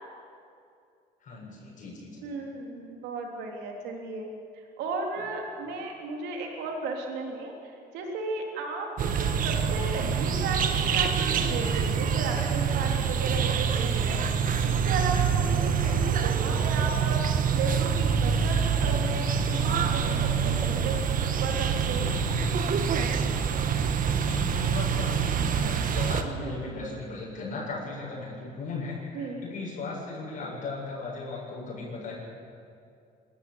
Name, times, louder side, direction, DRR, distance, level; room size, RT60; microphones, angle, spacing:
voice 1, 1.2-2.3 15.6-16.0 24.1-32.1, left 3 dB, 50° left, -5 dB, 7.8 m, -37 dB
voice 2, 2.2-4.3 4.8-14.2 14.6-17.2 17.6-22.1 26.2-26.8 29.1-29.5, right 3 dB, 90° right, 1 dB, 3.5 m, -35 dB
sound 1, 9.0-26.2, right 6 dB, 55° right, 1.6 m, -26 dB
24.5 x 14.5 x 8.9 m, 2.4 s
cardioid pair, 110°, 17 cm